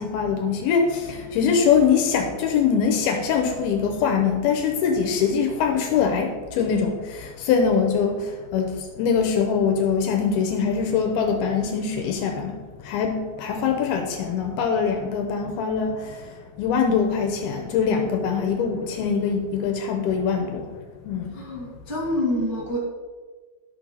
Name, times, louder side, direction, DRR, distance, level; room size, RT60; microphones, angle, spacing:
voice 1, 0.0-12.6 12.8-16.1 16.6-20.7 21.0-21.3, left 6 dB, 80° left, 4 dB, 2.6 m, -23 dB
voice 2, 21.3-22.8, left 1 dB, 15° right, -6 dB, 0.8 m, -27 dB
11.5 x 6.1 x 4.0 m, 1.4 s
omnidirectional pair, 4.5 m